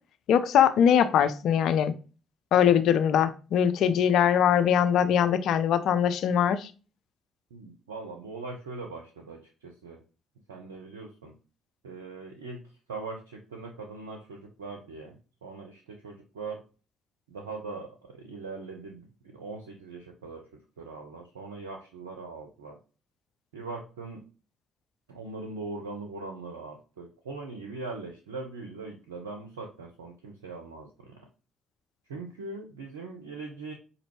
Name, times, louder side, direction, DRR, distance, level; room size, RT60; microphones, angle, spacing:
voice 1, 0.3-1.9 2.5-6.7, left 9 dB, 65° left, 0.4 m, -22 dB
voice 2, 7.5-10.0 10.5-11.3 11.8-12.6 12.9-16.6 17.3-20.4 20.8-22.8 23.5-24.2 25.1-31.2 32.1-33.7, right 3 dB, 90° right, 0.5 m, -41 dB
5.0 x 2.7 x 3.0 m
hypercardioid pair, 50°, 0 cm